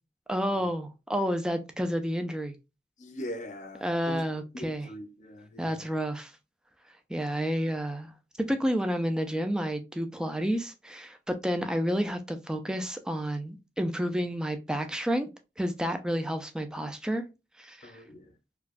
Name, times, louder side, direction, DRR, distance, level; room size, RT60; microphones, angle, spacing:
voice 1, 0.3-2.6 3.8-4.9 5.6-6.4 6.9-15.3 15.6-17.2 17.6-18.0, equal, 5° right, 0.4 m, -30 dB
voice 2, 3.0-4.2 4.5-5.9 17.8-18.3, equal, 45° left, 0.6 m, -41 dB
4.6 x 2.2 x 2.4 m
head